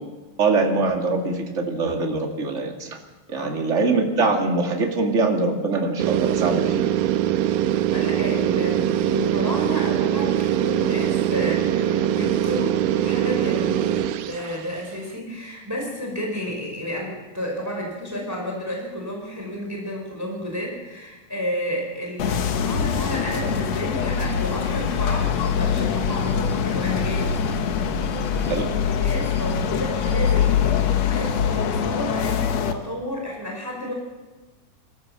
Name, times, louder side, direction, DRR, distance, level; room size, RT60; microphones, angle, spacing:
voice 1, 0.4-3.0 3.3-6.8 28.4-28.7, right 3 dB, 25° right, 2 dB, 2.2 m, -23 dB
sound 1, 6.0-14.8, right 11 dB, 75° right, 2.3 m, -22 dB
voice 2, 7.9-27.4 28.7-33.9, equal, 5° right, 0 dB, 5.1 m, -31 dB
sound 2, 22.2-32.7, left 7 dB, 60° left, 1.9 m, -23 dB
25.0 x 14.5 x 7.7 m, 1.2 s
omnidirectional pair, 4.1 m